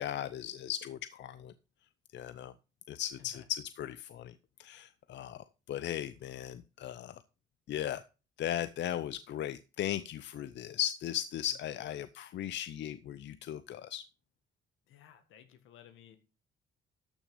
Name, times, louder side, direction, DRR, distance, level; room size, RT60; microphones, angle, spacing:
voice 1, 0.0-1.5 2.1-2.5 2.9-7.2 7.7-8.0 8.4-14.0, left 11 dB, 65° left, 14 dB, 0.6 m, -37 dB
voice 2, 14.9-16.2, left 9 dB, 90° left, 9 dB, 1.8 m, -56 dB
13.0 x 6.1 x 5.4 m, 0.31 s
cardioid pair, 90°, 20 cm